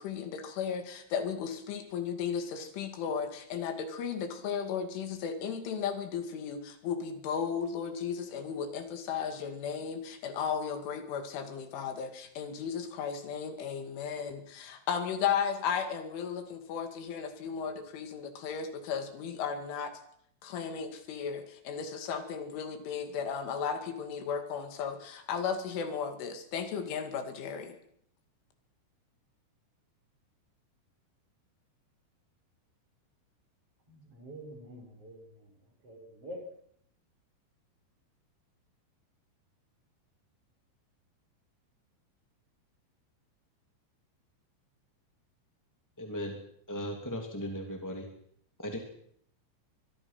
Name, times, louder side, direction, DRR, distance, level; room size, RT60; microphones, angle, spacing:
voice 1, 0.0-20.0 20.4-27.8, left 7 dB, 75° left, 7 dB, 4.7 m, -35 dB
voice 2, 33.9-35.5 35.8-36.4, equal, 30° right, 2 dB, 5.8 m, -46 dB
voice 3, 46.0-46.4 46.7-48.1 48.6-48.8, equal, 5° left, 2 dB, 1.5 m, -37 dB
24.5 x 22.0 x 5.9 m, 0.67 s
omnidirectional pair, 5.6 m